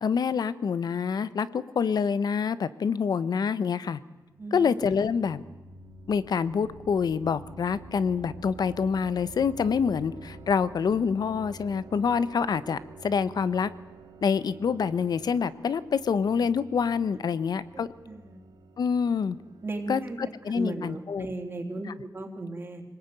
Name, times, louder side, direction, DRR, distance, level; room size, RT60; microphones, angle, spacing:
voice 1, 0.0-4.0 4.5-5.4 6.1-13.7 14.2-17.9 18.8-19.4 19.9-21.3, left 6 dB, 65° left, 15 dB, 1.1 m, -26 dB
sound 1, 4.2-20.9, right 3 dB, 80° right, 3.5 m, -49 dB
voice 2, 17.7-18.4 19.6-20.2 20.5-22.8, right 2 dB, 30° right, 2 dB, 3.3 m, -36 dB
26.5 x 19.5 x 9.3 m, 1.2 s
wide cardioid pair, 130°, 7 cm